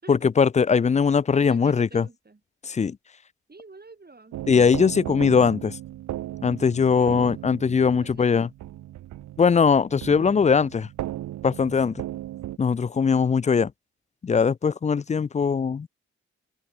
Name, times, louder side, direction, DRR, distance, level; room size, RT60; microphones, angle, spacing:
voice 1, 0.1-2.1 2.6-3.0 4.5-5.8 6.4-8.5 9.4-10.9 11.4-12.0 12.6-13.7 14.2-15.9, left 6 dB, 25° left, 0.4 m, -21 dB
voice 2, 1.4-2.4 3.5-4.4 6.6-7.4 7.8-8.5, right 3 dB, 30° right, 5.4 m, -48 dB
sound 1, 4.3-12.6, right 14 dB, 75° right, 0.8 m, -36 dB
supercardioid pair, 45°, 29 cm